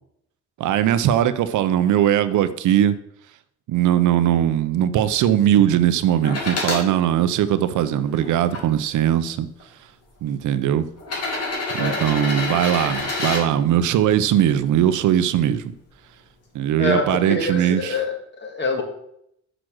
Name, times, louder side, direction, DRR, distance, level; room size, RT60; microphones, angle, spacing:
voice 1, 0.6-3.0 3.7-9.5 10.2-10.9 11.7-15.7 16.5-18.0, right 11 dB, 75° right, 0.7 m, -20 dB
sound 1, 6.2-6.8 7.6-8.6 9.6-9.7 11.0-13.4 15.3-15.4, left 2 dB, 55° left, 2.7 m, -27 dB
voice 2, 11.8-12.1 12.5-12.6 16.8-18.8, left 2 dB, 35° left, 1.9 m, -26 dB
6.4 x 5.0 x 6.1 m
cardioid pair, 90°, 30 cm